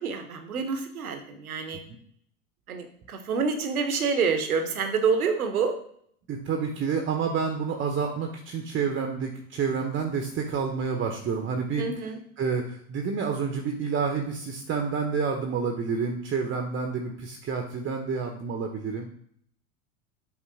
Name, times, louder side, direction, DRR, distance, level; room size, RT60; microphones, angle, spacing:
voice 1, 0.0-1.8 2.7-5.8 11.8-12.2, right 5 dB, 80° right, 6 dB, 1.2 m, -27 dB
voice 2, 6.3-11.9 12.4-19.1, right 5 dB, 30° right, 3 dB, 1.0 m, -29 dB
7.7 x 3.6 x 4.9 m, 0.66 s
hypercardioid pair, 85°, 43 cm